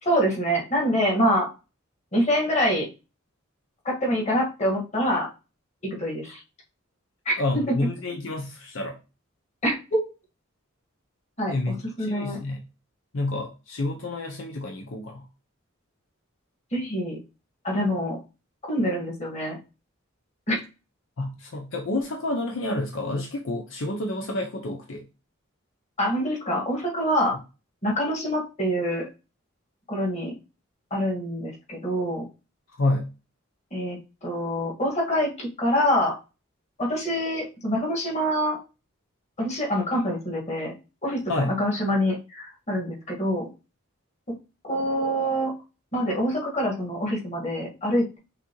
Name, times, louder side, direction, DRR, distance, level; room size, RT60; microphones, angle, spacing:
voice 1, 0.0-1.5 2.1-2.9 3.8-5.3 6.0-6.4 7.2-7.6 9.6-10.0 11.4-12.4 16.7-17.2 17.6-18.2 18.6-19.6 20.5-20.6 26.0-27.4 27.8-29.0 29.9-30.3 30.9-32.2 33.7-36.1 36.8-38.6 39.4-40.7 41.0-43.5 44.6-45.5 45.9-48.2, equal, 35° left, -2 dB, 1.7 m, -25 dB
voice 2, 7.4-9.0 11.5-12.6 13.1-15.2 21.2-25.0 32.8-33.1 41.3-41.6, left 2 dB, 70° left, 1 dB, 0.7 m, -29 dB
5.9 x 2.7 x 3.0 m, 0.30 s
head